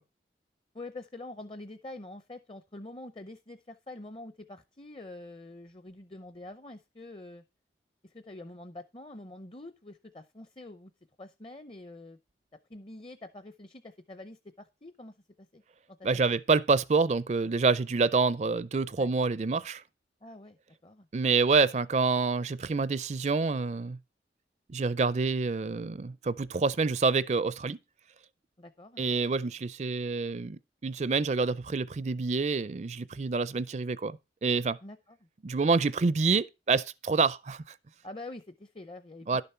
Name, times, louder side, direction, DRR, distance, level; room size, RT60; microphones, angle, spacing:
voice 1, 0.7-7.4 8.0-10.9 11.2-12.2 12.7-15.6 16.1-16.2 19.0-19.1 20.2-20.6 20.8-21.1 28.6-29.0 34.8-35.0 38.0-39.4, left 2 dB, 30° left, 0.6 m, -46 dB
voice 2, 16.0-19.8 21.1-24.0 24.7-27.8 29.0-34.8 35.4-37.7 39.3-39.4, right 4 dB, 40° right, 0.4 m, -27 dB
11.5 x 6.9 x 4.3 m
head